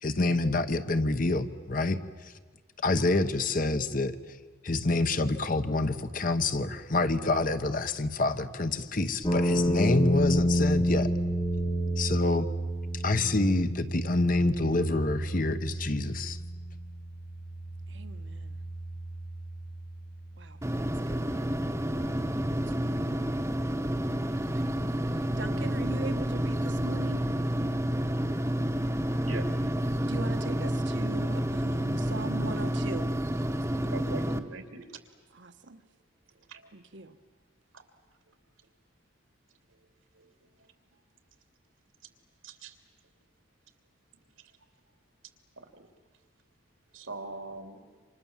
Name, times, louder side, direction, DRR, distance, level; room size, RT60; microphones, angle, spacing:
voice 1, 0.0-2.3 2.8-4.2 4.6-11.1 11.9-12.5 12.9-16.4, left 2 dB, 40° left, 9 dB, 1.1 m, -27 dB
sound 1, 9.2-23.3, equal, 20° left, 1.2 m, -31 dB
voice 2, 17.9-18.5 20.4-20.6 21.1-21.2 22.8-23.1 24.3-24.7 25.4-27.2 30.1-33.1 35.3-35.8 36.7-37.1, right 3 dB, 65° right, 8 dB, 1.2 m, -40 dB
sound 2, 20.6-34.4, equal, 15° right, 1.1 m, -29 dB
voice 3, 33.9-34.8 36.5-36.6 40.2-40.3 42.4-42.7 45.7-45.8 46.9-47.8, right 3 dB, 90° right, 6 dB, 2.9 m, -41 dB
28.5 x 26.5 x 7.4 m, 1.5 s
head